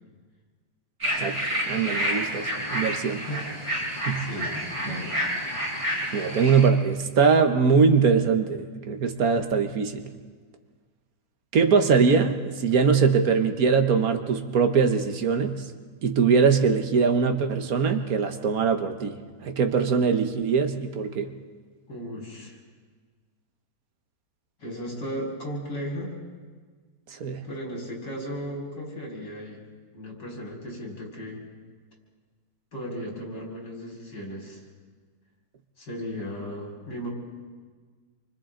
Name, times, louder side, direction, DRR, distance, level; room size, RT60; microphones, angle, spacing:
sound 1, 1.0-6.7, equal, 15° right, 5.1 m, -29 dB
voice 1, 1.7-3.3 4.1-4.2 6.1-10.1 11.5-15.6 16.0-21.3 27.1-27.4, right 5 dB, 60° right, 6 dB, 1.5 m, -22 dB
voice 2, 4.2-5.2 21.9-22.6 24.6-26.2 27.4-29.6 29.9-31.5 32.7-34.6 35.8-37.1, equal, 90° left, -2 dB, 5.3 m, -36 dB
28.5 x 24.5 x 3.8 m, 1.5 s
omnidirectional pair, 1.8 m